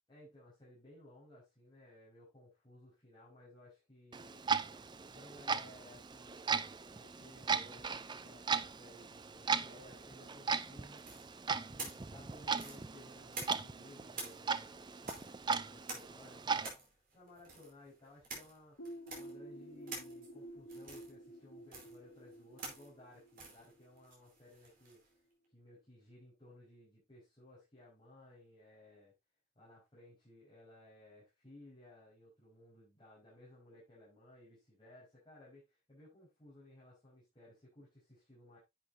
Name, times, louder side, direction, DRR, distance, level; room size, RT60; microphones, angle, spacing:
voice 1, 0.1-4.4 5.1-6.6 6.9-11.0 11.5-18.8 19.2-25.0 25.5-29.1 29.5-38.6, left 1 dB, 20° left, 5.1 m, -59 dB
Clock, 4.1-16.7, right 5 dB, 20° right, 0.4 m, -38 dB
sound 1, 11.0-13.8 14.1-25.1, right 3 dB, 45° right, 4.7 m, -49 dB
sound 2, 18.8-24.3, right 1 dB, 65° left, 4.5 m, -51 dB
10.5 x 8.2 x 2.7 m
head